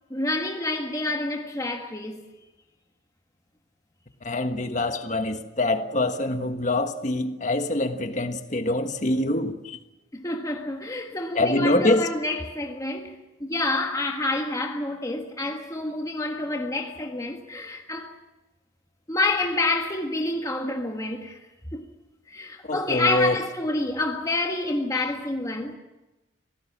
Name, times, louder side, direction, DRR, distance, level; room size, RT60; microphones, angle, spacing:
voice 1, 0.1-2.2 10.1-18.1 19.1-21.4 21.7-21.8 22.3-25.7, left 2 dB, 15° left, 1.5 m, -28 dB
voice 2, 4.2-9.8 11.3-12.1 22.6-23.4, left 2 dB, 35° left, 1.4 m, -25 dB
25.5 x 18.0 x 7.3 m
head